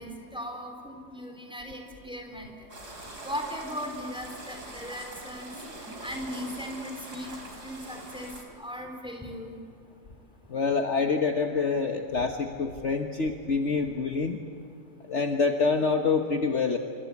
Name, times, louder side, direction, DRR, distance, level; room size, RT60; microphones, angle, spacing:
voice 1, 0.0-2.5 3.2-5.5 6.0-7.3 7.6-8.3 8.6-9.6, equal, 5° right, 3 dB, 4.0 m, -38 dB
sound 1, 2.7-8.4, right 1 dB, 90° right, 4.6 m, -43 dB
voice 2, 10.5-14.4 15.1-16.8, left 4 dB, 50° left, 4 dB, 1.5 m, -26 dB
27.5 x 24.0 x 8.6 m, 2.5 s
omnidirectional pair, 1.7 m